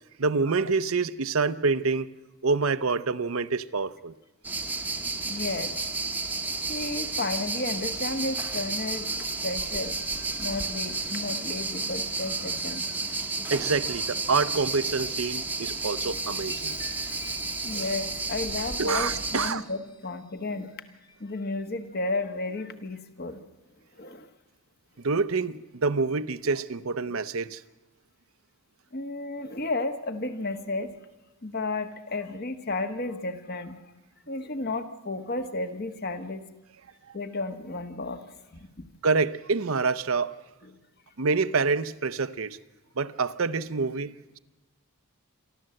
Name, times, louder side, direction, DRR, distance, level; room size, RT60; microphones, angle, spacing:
voice 1, 0.2-2.1 2.4-4.1 13.5-16.8 18.8-19.6 25.0-27.6 39.0-40.3 41.2-42.6 43.0-44.4, right 4 dB, 70° right, 0.7 m, -27 dB
sound 1, 4.4-19.5, right 3 dB, 10° right, 0.9 m, -32 dB
voice 2, 5.2-5.8 6.7-12.9 17.6-20.8 21.2-23.5 23.9-24.3 28.9-30.9 31.4-33.9 34.3-36.5 37.1-38.2 38.5-38.9 40.6-40.7, left 2 dB, 45° left, 1.3 m, -33 dB
Chime, 15.7-21.6 22.2-22.5, left 4 dB, 20° left, 1.3 m, -50 dB
27.5 x 12.0 x 7.7 m
head